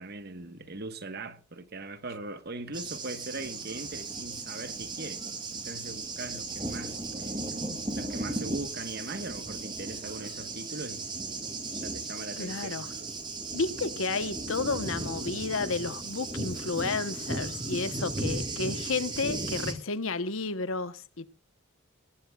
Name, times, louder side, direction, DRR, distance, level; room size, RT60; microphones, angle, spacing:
voice 1, 0.0-5.2 5.5-11.1 11.7-12.8, right 2 dB, 45° right, 1.3 m, -40 dB
Thunder, 2.7-19.7, right 2 dB, 20° right, 2.4 m, -36 dB
voice 2, 12.4-12.9 13.5-21.3, left 4 dB, 70° left, 1.0 m, -32 dB
18.0 x 17.5 x 2.4 m
head